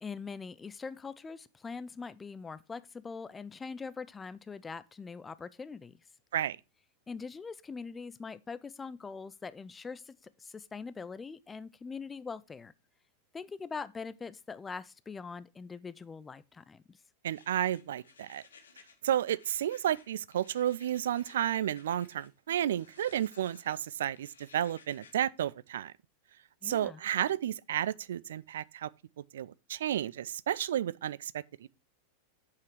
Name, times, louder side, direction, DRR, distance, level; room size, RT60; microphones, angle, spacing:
voice 1, 0.0-6.1 7.1-12.7 13.3-17.0 26.6-27.0, left 5 dB, 15° left, 0.4 m, -42 dB
voice 2, 17.2-18.4 19.0-25.9 26.6-28.9 29.3-31.7, right 11 dB, 60° right, 0.3 m, -32 dB
sound 1, 17.3-19.0 19.3-22.3 22.7-23.8 24.1-25.1, left 6 dB, 70° left, 1.2 m, -59 dB
7.6 x 5.7 x 4.6 m
figure-of-eight pair, 90°, 0 cm